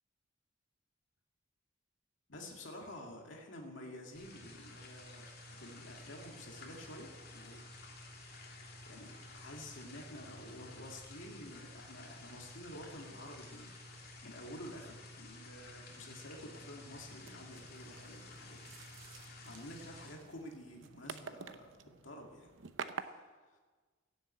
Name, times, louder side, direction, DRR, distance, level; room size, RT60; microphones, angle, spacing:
voice 1, 2.3-7.6 8.9-18.8 19.0-22.5 23.0-23.2, left 1 dB, 70° left, 1 dB, 2.2 m, -50 dB
zoo morewater, 4.2-20.1, left 2 dB, 55° left, 2.9 m, -52 dB
sound 1, 16.9-23.0, right 5 dB, 75° right, 0.8 m, -49 dB
16.0 x 7.9 x 8.4 m, 1.4 s
head